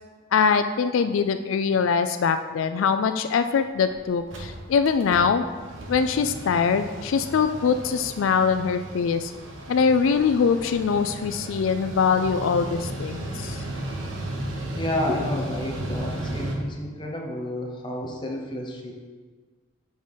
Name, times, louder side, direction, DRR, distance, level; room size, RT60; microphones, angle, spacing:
voice 1, 0.3-5.5 5.9-9.3 9.7-13.6, left 6 dB, 85° left, 9 dB, 0.4 m, -23 dB
Mechanical fan, 3.5-3.6 3.9-4.0 4.2-16.6, right 1 dB, 75° right, 1.1 m, -35 dB
voice 2, 14.4-18.9, left 1 dB, 25° left, -1 dB, 1.0 m, -31 dB
6.2 x 5.0 x 5.5 m, 1.4 s
head